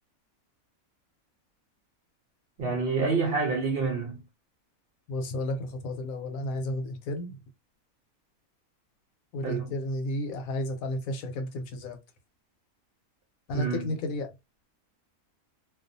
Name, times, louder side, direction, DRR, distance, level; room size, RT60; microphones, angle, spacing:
voice 1, 2.6-4.2 9.4-9.7 13.5-13.9, right 4 dB, 60° right, 0.6 m, -28 dB
voice 2, 5.1-7.4 9.3-12.0 13.5-14.3, left 1 dB, 80° left, 1.1 m, -32 dB
2.3 x 2.3 x 2.6 m
omnidirectional pair, 1.5 m